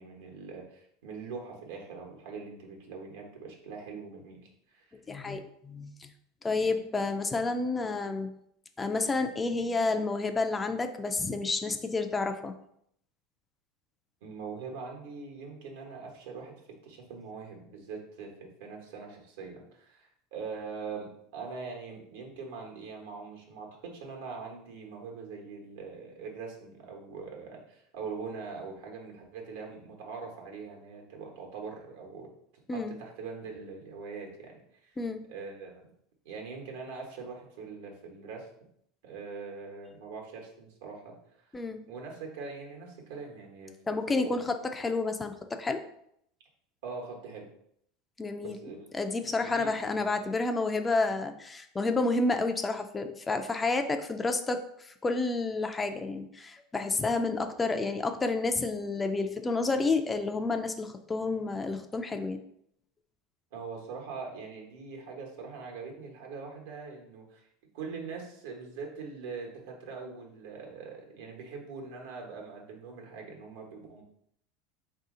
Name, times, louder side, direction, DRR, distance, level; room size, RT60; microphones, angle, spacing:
voice 1, 0.0-4.4 4.7-4.9 14.2-16.6 16.8-21.1 21.3-32.3 32.7-34.9 35.3-35.9 36.2-38.5 39.0-41.5 41.9-44.4 46.8-47.4 48.4-48.9 49.4-50.1 63.5-67.5 67.7-74.0, right 4 dB, 80° right, 1 dB, 1.1 m, -42 dB
voice 2, 5.1-6.1 6.4-8.3 8.8-12.5 32.7-33.0 35.0-35.3 41.5-41.8 43.9-45.8 48.2-48.6 48.9-62.4, left 3 dB, 15° left, 6 dB, 0.3 m, -30 dB
4.0 x 2.7 x 3.7 m, 0.72 s
supercardioid pair, 130°, 0 cm